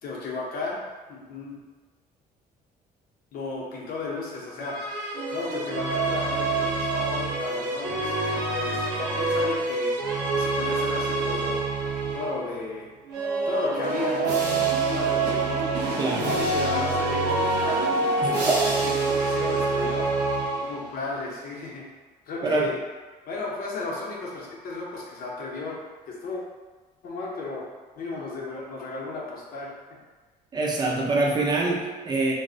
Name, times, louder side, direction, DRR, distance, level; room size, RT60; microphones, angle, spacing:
voice 1, 0.0-0.8 1.1-1.6 3.3-4.9 5.3-11.6 12.1-12.9 13.5-14.2 14.9-15.8 16.3-17.9 18.4-18.6 18.8-20.1 20.6-21.8 22.3-22.7 23.3-26.4 27.0-27.6 28.0-29.7, left 3 dB, 60° left, -4 dB, 0.6 m, -34 dB
sound 1, 4.6-12.5 13.1-21.0, right 3 dB, 75° right, 0.6 m, -26 dB
voice 2, 16.0-16.3 18.2-18.6 22.4-22.7 30.5-32.3, right 3 dB, 25° right, -2 dB, 0.5 m, -25 dB
2.5 x 2.0 x 2.4 m, 1.3 s
cardioid pair, 110°, 17 cm